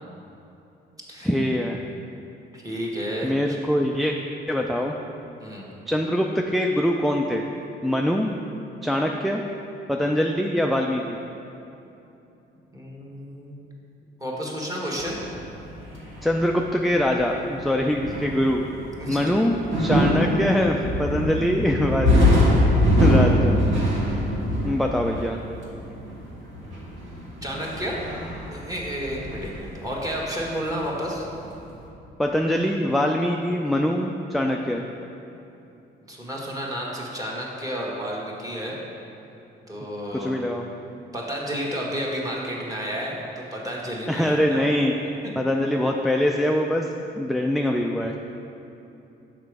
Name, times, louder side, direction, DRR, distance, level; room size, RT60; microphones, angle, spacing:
voice 1, 1.2-1.8 3.2-4.2 4.5-4.9 5.9-7.4 7.8-8.3 8.8-9.4 9.9-11.2 16.2-18.6 19.1-22.3 22.6-23.6 24.6-25.4 32.2-34.8 40.1-40.7 44.1-44.9 45.3-46.9 47.2-48.1, equal, ahead, 1 dB, 0.3 m, -23 dB
voice 2, 2.5-3.6 5.4-5.7 12.7-13.6 14.2-15.2 18.9-19.3 27.4-28.0 28.5-31.3 36.1-38.8 39.7-40.4 41.1-44.7 45.2-45.3, equal, 15° right, -4 dB, 1.5 m, -31 dB
sound 1, 15.0-30.9 31.2-31.8, left 1 dB, 75° right, 1.6 m, -23 dB
6.6 x 5.0 x 4.7 m, 2.9 s
cardioid pair, 90°, 20 cm